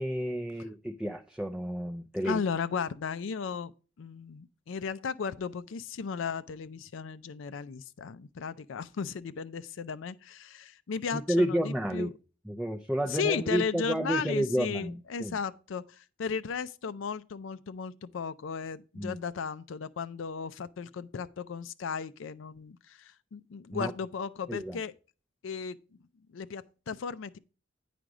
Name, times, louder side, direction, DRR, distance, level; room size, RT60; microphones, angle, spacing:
voice 1, 0.0-2.4 11.1-12.1 12.5-15.4 19.0-19.2 23.7-23.9 24.5-24.8, equal, 5° right, 0.4 m, -31 dB
voice 2, 2.2-3.7 4.0-12.1 13.1-24.9 25.4-25.8 26.3-27.4, left 6 dB, 75° left, 0.4 m, -35 dB
9.1 x 5.1 x 4.7 m
head